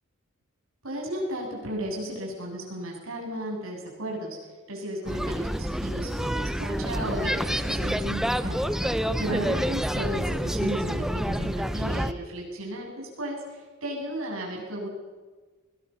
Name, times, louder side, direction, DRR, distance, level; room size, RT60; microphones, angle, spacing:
voice 1, 0.8-4.4 4.7-8.7 9.2-14.9, right 1 dB, 85° right, -1 dB, 7.8 m, -34 dB
sound 1, 5.1-12.1, equal, ahead, 0.6 m, -28 dB
21.0 x 18.5 x 7.1 m, 1.4 s
head